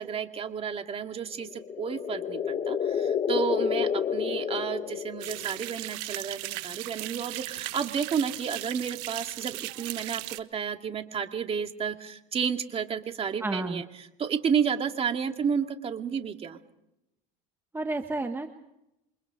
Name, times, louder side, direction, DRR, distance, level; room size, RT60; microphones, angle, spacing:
voice 1, 0.0-13.8 14.2-16.6, right 7 dB, 30° right, 6 dB, 2.3 m, -31 dB
sound 1, 1.4-5.6, left 7 dB, 30° left, 1.6 m, -29 dB
sound 2, 5.2-10.4, right 18 dB, 70° right, 1.3 m, -37 dB
voice 2, 13.4-13.8 17.7-18.5, right 2 dB, 10° right, 6 dB, 1.4 m, -31 dB
28.5 x 25.0 x 5.1 m, 0.85 s
cardioid pair, 130°, 20 cm